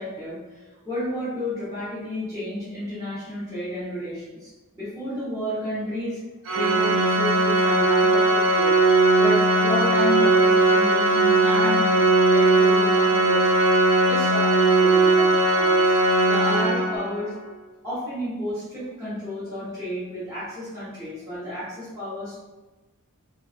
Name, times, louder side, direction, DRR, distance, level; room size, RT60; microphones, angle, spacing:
voice 1, 0.0-6.2 6.5-8.8 9.2-13.5 13.9-15.9 16.2-17.3 17.8-22.3, left 1 dB, 15° right, -15 dB, 1.0 m, -31 dB
Organ, 6.5-17.3, right 2 dB, 60° right, 0.4 m, -19 dB
2.5 x 2.4 x 2.4 m, 1.2 s
head